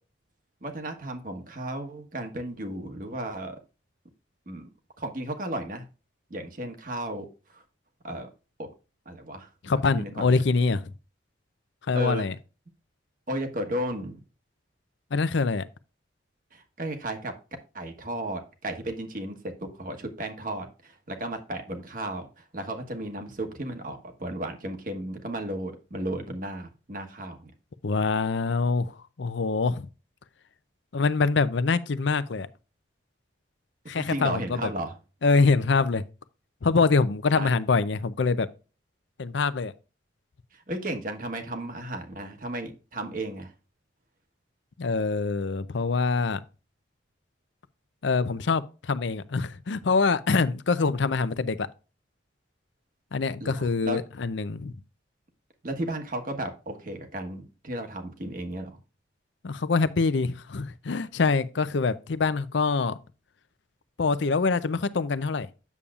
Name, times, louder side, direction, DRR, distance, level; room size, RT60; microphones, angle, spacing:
voice 1, 0.6-3.5 4.5-4.7 5.0-5.8 6.3-7.6 8.0-8.3 8.6-8.7 9.0-10.4 11.9-12.3 13.3-14.2 16.5-17.3 17.7-27.5 34.0-35.0 37.4-37.5 40.5-43.5 53.4-54.0 55.6-58.8, right 1 dB, 45° right, 1.3 m, -34 dB
voice 2, 9.6-10.9 11.9-12.3 15.1-15.6 27.8-29.9 30.9-32.5 33.9-34.7 35.2-36.0 36.6-38.5 39.2-39.7 44.8-46.4 48.0-51.7 53.1-54.8 59.4-63.0 64.0-65.5, left 4 dB, 70° left, 0.5 m, -25 dB
8.3 x 7.0 x 2.4 m
head